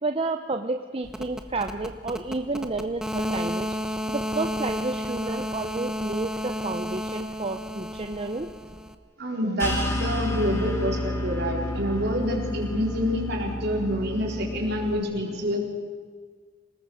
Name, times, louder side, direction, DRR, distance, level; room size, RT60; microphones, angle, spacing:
voice 1, 0.0-8.5, right 3 dB, 30° right, 6 dB, 0.8 m, -31 dB
sound 1, 1.0-8.9, equal, 5° right, 1.1 m, -32 dB
voice 2, 9.2-15.6, equal, 55° right, 1 dB, 4.3 m, -27 dB
sound 2, 9.6-15.0, left 1 dB, 15° left, 3.2 m, -30 dB
27.0 x 19.0 x 6.4 m, 1.5 s
head